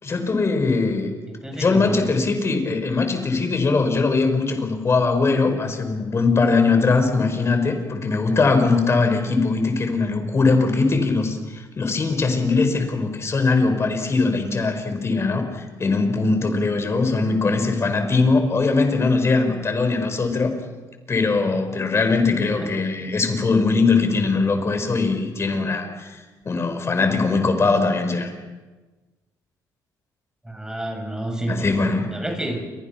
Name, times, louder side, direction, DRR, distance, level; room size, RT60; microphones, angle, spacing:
voice 1, 0.0-1.1 1.5-20.5 21.1-28.3 31.5-32.1, left 3 dB, 35° left, 7 dB, 5.3 m, -21 dB
voice 2, 1.3-2.1 22.3-22.4 30.4-31.7 32.1-32.6, right 1 dB, 10° right, 3 dB, 7.3 m, -29 dB
29.0 x 24.5 x 6.0 m, 1.3 s
cardioid pair, 85°, 8 cm